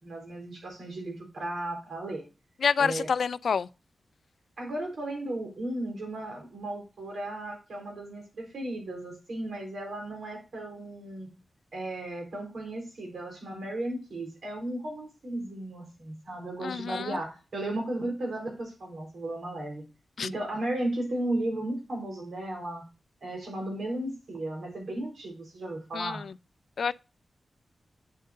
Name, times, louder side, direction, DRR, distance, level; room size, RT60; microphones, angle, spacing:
voice 1, 0.0-2.2 2.8-3.1 4.6-11.3 11.7-19.9 20.2-22.9 23.2-26.2, right 1 dB, 75° right, 3.9 m, -35 dB
voice 2, 2.6-3.7 16.6-17.2 20.2-20.3 25.9-26.2 26.8-26.9, left 6 dB, 75° left, 0.3 m, -27 dB
8.5 x 7.5 x 2.5 m
wide cardioid pair, 115°, 0 cm